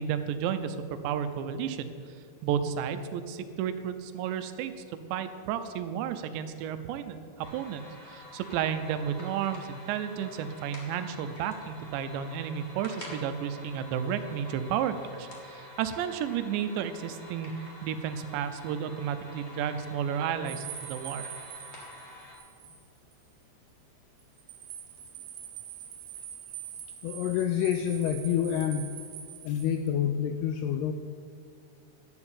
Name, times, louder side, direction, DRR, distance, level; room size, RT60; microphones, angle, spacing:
voice 1, 0.0-1.9 2.4-4.7 5.1-21.3, right 8 dB, 90° right, 10 dB, 3.0 m, -32 dB
sound 1, 7.4-22.3, left 1 dB, 70° left, 0.6 m, -48 dB
sound 2, 20.5-22.8 23.1-23.2 24.2-29.9, right 9 dB, 70° right, 2.5 m, -44 dB
voice 2, 27.0-28.9 29.4-30.9, left 9 dB, 85° left, 8 dB, 2.2 m, -28 dB
11.5 x 7.2 x 8.5 m, 2.4 s
omnidirectional pair, 5.0 m